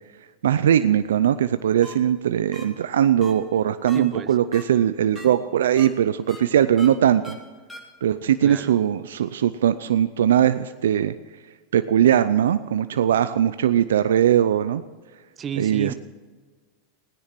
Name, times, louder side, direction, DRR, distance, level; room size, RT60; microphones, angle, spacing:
voice 1, 0.4-7.4 8.0-11.1 11.7-14.8 15.6-15.9, right 10 dB, 85° right, 12 dB, 0.5 m, -20 dB
sound 1, 1.8-1.9 2.5-2.6 3.2-3.3 3.9-4.0 4.5-4.6 5.1-5.3 5.8-5.9 6.3-6.4 6.8-6.9 7.2-7.3 7.7-7.8, left 1 dB, 10° left, 3.7 m, -39 dB
voice 2, 3.9-4.4 8.4-8.9 15.4-15.9, right 7 dB, 30° right, 14 dB, 0.9 m, -32 dB
17.0 x 10.0 x 6.1 m, 1.4 s
hypercardioid pair, 105°, 0 cm